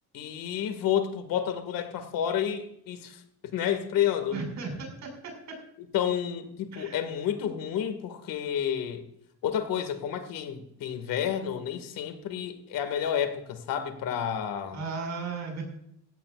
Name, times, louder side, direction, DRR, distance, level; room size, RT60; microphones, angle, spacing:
voice 1, 0.1-4.4 5.9-9.0 9.4-14.8, left 9 dB, 70° left, 8 dB, 2.2 m, -30 dB
voice 2, 4.3-5.3 6.7-7.0 14.7-15.6, right 4 dB, 50° right, 2 dB, 6.1 m, -35 dB
16.5 x 16.5 x 2.5 m, 0.73 s
cardioid pair, 155°, 34 cm